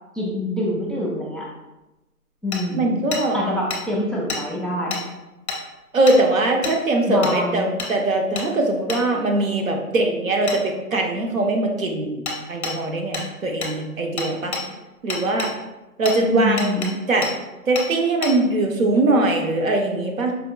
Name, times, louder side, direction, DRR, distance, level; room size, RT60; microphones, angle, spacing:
voice 1, 0.1-1.5 2.4-3.0 3.3-5.0 7.1-7.8 16.2-17.0, left 1 dB, ahead, -4 dB, 0.3 m, -25 dB
Hammer, 2.5-2.6 3.1-3.2 3.7-3.8 4.3-4.4 4.9-5.0 5.5-5.6 6.1-6.2 6.6-6.8 7.2-7.4 7.8-7.9 8.4-8.5 8.9-9.0 10.5-10.6 12.3-12.4 12.6-12.8 13.1-13.3 13.6-13.7 14.2-14.6 15.1-15.5 16.1-16.2 16.6-16.9 17.2-17.3 17.8-17.9 18.2-18.3, left 3 dB, 45° left, 0.6 m, -28 dB
voice 2, 2.7-3.4 5.9-14.5 15.0-15.5 16.0-17.3 17.7-20.3, right 2 dB, 60° right, 2 dB, 0.7 m, -21 dB
4.2 x 2.2 x 2.2 m, 1.0 s
figure-of-eight pair, 165°, 45 cm